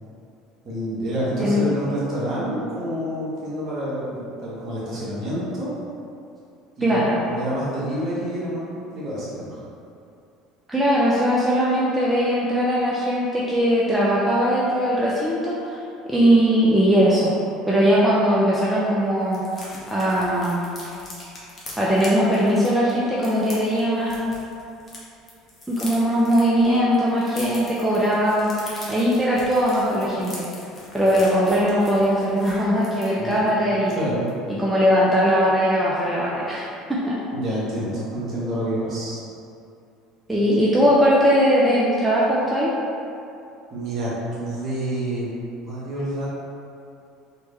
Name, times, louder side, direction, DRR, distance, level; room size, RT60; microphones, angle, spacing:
voice 1, 0.6-5.7 6.8-7.0 7.3-9.6 33.1-34.3 37.3-39.2 40.4-40.5 43.7-46.3, right 1 dB, 45° right, -9 dB, 1.5 m, -28 dB
voice 2, 6.8-7.2 10.7-15.8 16.1-17.3 17.7-19.4 19.9-20.6 21.8-24.2 25.7-30.5 30.9-34.0 34.6-36.7 37.1-37.2 40.3-42.7, equal, 5° right, -7 dB, 0.6 m, -20 dB
sound 1, 18.3-18.4 18.7-18.8 19.0-25.0 25.3-33.5 33.9-34.0 34.3-34.5, left 1 dB, 30° left, 1.1 m, -42 dB
3.3 x 3.1 x 3.1 m, 2.6 s
hypercardioid pair, 70°, 0 cm